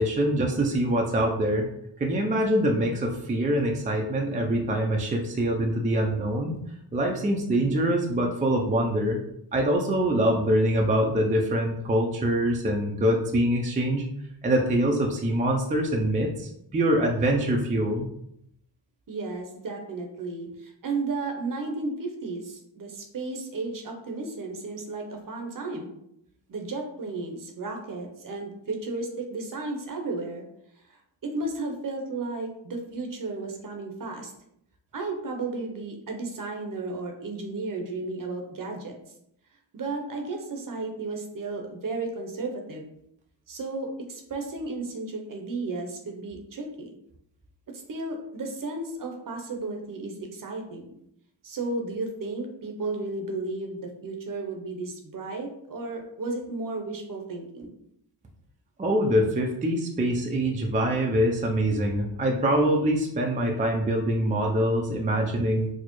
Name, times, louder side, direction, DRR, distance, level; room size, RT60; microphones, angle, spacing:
voice 1, 0.0-1.7 2.0-6.6 6.9-9.2 9.5-14.1 14.4-18.1 58.8-65.7, right 1 dB, 20° right, 1 dB, 0.4 m, -24 dB
voice 2, 19.1-25.9 26.5-30.4 31.2-34.3 34.9-39.0 39.7-42.9 43.5-46.9 47.7-50.9 51.4-57.8, right 3 dB, 45° right, 2 dB, 0.7 m, -33 dB
4.2 x 2.0 x 3.0 m, 0.76 s
cardioid pair, 80°, 48 cm